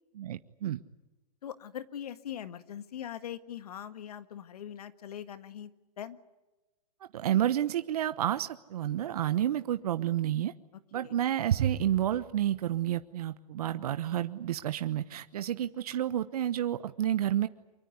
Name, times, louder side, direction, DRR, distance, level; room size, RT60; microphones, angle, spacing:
voice 1, 0.1-0.8 7.1-10.5 10.9-17.5, right 11 dB, 70° right, 11 dB, 1.1 m, -30 dB
voice 2, 1.4-5.7 6.0-6.2 10.9-11.1, left 10 dB, 70° left, 11 dB, 1.8 m, -41 dB
24.5 x 23.5 x 9.4 m, 1.1 s
hypercardioid pair, 135°, 20 cm